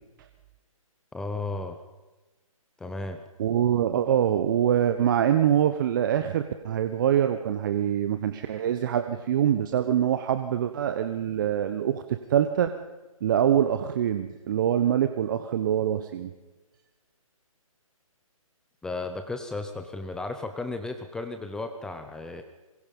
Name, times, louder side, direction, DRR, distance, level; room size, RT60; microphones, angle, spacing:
voice 1, 1.1-1.8 2.8-3.2 18.8-22.4, left 3 dB, 5° left, 6 dB, 0.8 m, -34 dB
voice 2, 3.4-12.7 13.2-16.3, right 10 dB, 35° right, 8 dB, 1.1 m, -24 dB
27.0 x 22.5 x 5.5 m, 1.1 s
hypercardioid pair, 155°, 18 cm